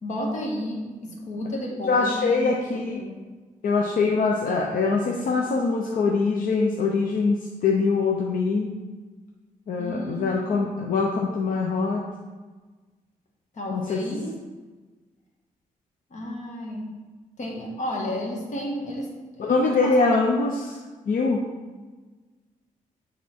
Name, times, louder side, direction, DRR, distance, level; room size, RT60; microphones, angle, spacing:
voice 1, 0.0-3.2 9.8-10.7 13.5-14.3 16.1-16.9 17.4-19.9, left 1 dB, 55° left, -1 dB, 1.6 m, -32 dB
voice 2, 1.9-3.0 3.6-8.7 9.7-12.0 13.7-14.0 19.4-20.8 21.1-21.4, left 4 dB, 75° left, 0 dB, 0.7 m, -23 dB
8.3 x 3.6 x 4.4 m, 1.3 s
cardioid pair, 100°, 15 cm